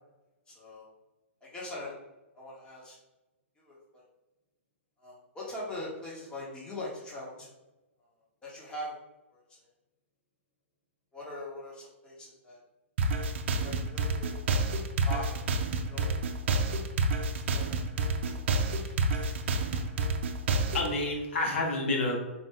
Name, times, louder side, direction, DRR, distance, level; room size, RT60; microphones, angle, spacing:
voice 1, 0.5-0.9 1.4-2.0 2.3-3.0 3.6-4.0 5.0-7.5 8.4-9.0 9.3-9.7 11.1-12.6 13.5-14.3 15.0-15.4 15.7-16.2 17.3-17.8, left 1 dB, 10° left, -5 dB, 1.2 m, -41 dB
sound 1, 13.0-20.9, right 2 dB, 55° right, 0.5 m, -28 dB
voice 2, 19.0-19.9 20.7-22.2, left 2 dB, 65° left, -1 dB, 1.2 m, -31 dB
4.3 x 2.6 x 3.4 m, 1.0 s
hypercardioid pair, 135°, 7 cm